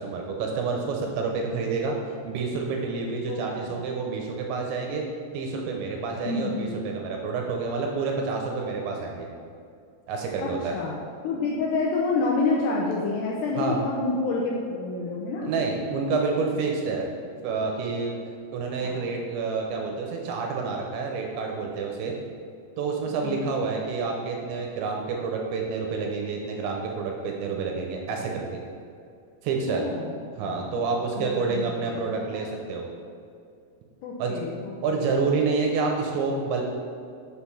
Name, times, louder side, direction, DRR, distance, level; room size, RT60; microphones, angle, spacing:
voice 1, 0.0-2.0 2.3-5.0 5.3-9.3 10.1-10.8 13.6-13.8 15.4-17.1 17.4-18.2 18.5-22.2 22.8-28.6 29.4-29.8 30.4-32.9 34.2-34.3 34.8-36.6, right 4 dB, 75° right, 1 dB, 2.9 m, -28 dB
voice 2, 6.3-6.7 10.4-11.0 11.2-15.5 18.8-19.0 23.2-23.5 29.7-30.1 30.4-30.6 31.2-32.5 34.0-35.0, left 3 dB, 80° left, -3 dB, 2.5 m, -28 dB
7.4 x 6.7 x 5.5 m, 2.4 s
omnidirectional pair, 5.8 m